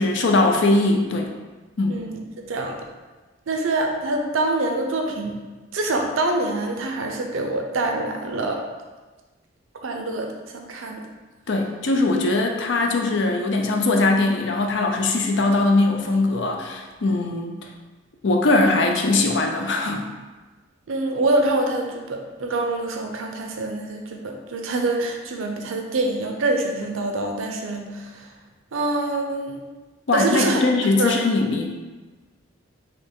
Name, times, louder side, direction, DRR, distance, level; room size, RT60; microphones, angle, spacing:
voice 1, 0.0-1.3 1.8-2.0 11.5-17.6 18.2-20.0 30.1-31.7, left 2 dB, 60° left, 2 dB, 0.5 m, -21 dB
voice 2, 1.9-2.8 3.5-5.4 5.7-8.6 9.8-11.0 20.9-28.3 28.7-29.6 30.1-30.6 31.0-31.1, right 2 dB, 85° right, 2 dB, 0.6 m, -25 dB
4.1 x 2.8 x 3.6 m, 1.3 s
head